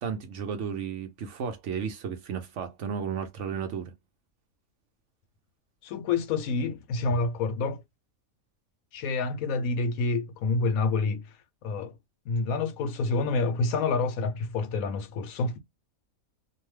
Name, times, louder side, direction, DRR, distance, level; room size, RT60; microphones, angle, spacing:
voice 1, 0.0-3.9, right 7 dB, 65° right, 0.9 m, -33 dB
voice 2, 5.8-7.8 8.9-11.3 11.6-12.0 12.3-15.6, left 3 dB, 80° left, 1.1 m, -28 dB
2.7 x 2.2 x 3.1 m
omnidirectional pair, 1.5 m